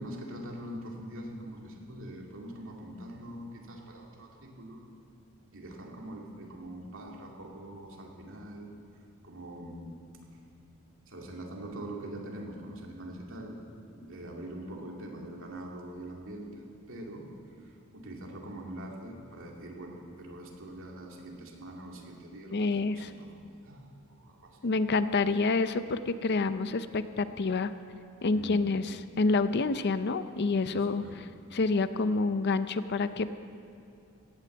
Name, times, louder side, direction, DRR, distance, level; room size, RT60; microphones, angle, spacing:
voice 1, 0.0-4.8 5.5-8.7 9.2-10.0 11.1-13.6 13.9-17.3 17.6-24.9 28.3-28.6 30.7-31.2, right 1 dB, 65° right, -1 dB, 2.4 m, -43 dB
voice 2, 22.5-23.1 24.6-27.7 28.2-31.0 31.5-33.4, left 3 dB, 50° left, 12 dB, 0.5 m, -28 dB
17.0 x 9.7 x 7.8 m, 2.6 s
head